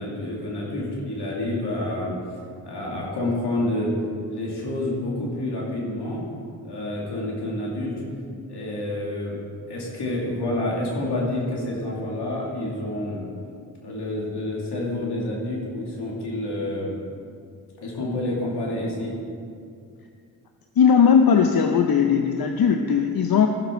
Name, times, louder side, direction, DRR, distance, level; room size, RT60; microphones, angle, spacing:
voice 1, 0.0-2.1 2.6-3.9 4.3-6.2 6.6-8.0 8.5-9.4 9.7-13.2 13.8-17.0 17.8-19.1, left 1 dB, 80° left, -4 dB, 2.6 m, -28 dB
voice 2, 20.8-23.5, left 7 dB, 60° left, 5 dB, 0.7 m, -18 dB
14.5 x 6.8 x 4.5 m, 2.4 s
supercardioid pair, 40°, 40 cm